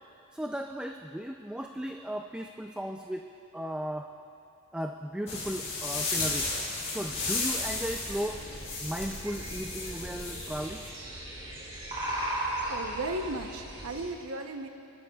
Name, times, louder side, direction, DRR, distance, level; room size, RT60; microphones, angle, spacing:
voice 1, 0.3-3.3 3.5-4.1 4.7-6.6 6.9-8.4 8.8-10.8, equal, 5° right, 3 dB, 0.3 m, -36 dB
sound 1, 5.3-10.9, left 3 dB, 30° left, 2.2 m, -34 dB
sound 2, 7.1-14.1, right 1 dB, 25° right, 2.5 m, -38 dB
voice 2, 12.7-14.7, right 2 dB, 85° right, 5 dB, 0.8 m, -35 dB
28.0 x 12.0 x 2.3 m, 2.7 s
head